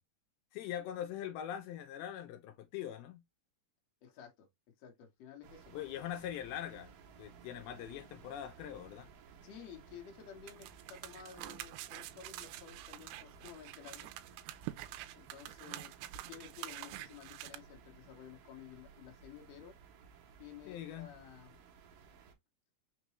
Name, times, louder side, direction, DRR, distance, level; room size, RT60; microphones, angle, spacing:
voice 1, 0.5-3.2 5.7-6.9 7.2-9.1 20.7-21.1, left 10 dB, 80° left, 2.4 m, -42 dB
voice 2, 4.0-4.5 4.8-5.7 9.4-14.1 15.1-15.9 16.3-19.8 20.4-21.5, left 8 dB, 60° left, 1.7 m, -53 dB
sound 1, 5.4-22.4, right 6 dB, 70° right, 2.2 m, -58 dB
sound 2, 10.5-17.6, right 15 dB, 85° right, 2.6 m, -47 dB
5.9 x 2.3 x 3.0 m
omnidirectional pair, 4.6 m